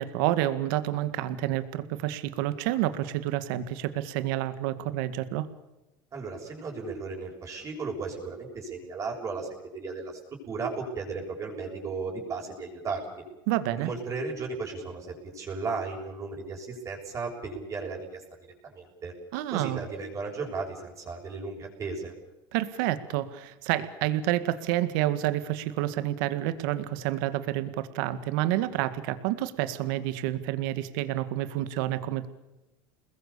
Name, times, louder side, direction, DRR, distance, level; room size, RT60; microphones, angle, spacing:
voice 1, 0.0-5.5 13.5-13.9 19.3-19.8 22.5-32.3, right 14 dB, 75° right, 12 dB, 2.0 m, -29 dB
voice 2, 6.1-9.5 9.7-13.2 13.8-18.2 18.6-19.1 19.5-22.1, right 4 dB, 30° right, 1 dB, 7.0 m, -35 dB
29.5 x 21.0 x 7.0 m, 1.0 s
supercardioid pair, 135°, 11 cm